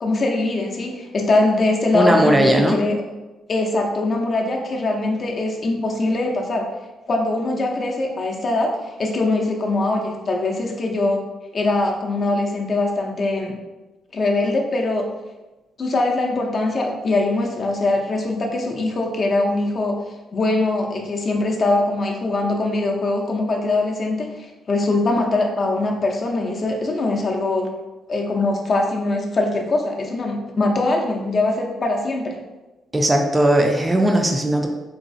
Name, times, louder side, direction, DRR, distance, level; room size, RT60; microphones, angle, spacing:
voice 1, 0.0-3.0 3.5-6.7 7.1-11.2 11.5-13.6 14.1-15.1 15.8-20.0 20.3-27.7 28.1-32.4, left 2 dB, 45° left, 0 dB, 0.5 m, -22 dB
voice 2, 1.9-2.8 32.9-34.7, right 1 dB, 15° right, 3 dB, 0.4 m, -17 dB
3.9 x 2.3 x 2.6 m, 1.1 s
cardioid pair, 90°, 0 cm